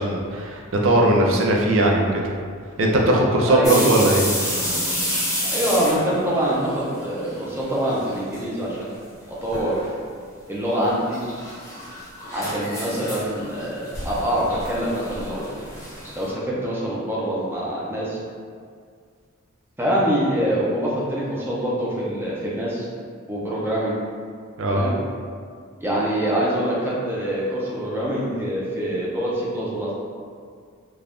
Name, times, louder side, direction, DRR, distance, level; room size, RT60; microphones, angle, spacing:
voice 1, 0.0-2.0 2.8-4.2 24.6-24.8, right 1 dB, 65° right, -1 dB, 0.5 m, -19 dB
voice 2, 3.5-4.1 5.5-8.9 9.4-9.7 10.5-11.2 12.3-15.5 16.1-18.2 19.8-22.9 23.3-24.0 24.7-24.9 25.8-29.9, right 1 dB, 10° right, -6 dB, 0.5 m, -24 dB
sound 1, 3.6-7.5 7.7-8.4 8.7-8.8 9.5-9.9 10.9-16.3, equal, 15° left, 0.8 m, -30 dB
2.6 x 2.3 x 3.4 m, 2.1 s
head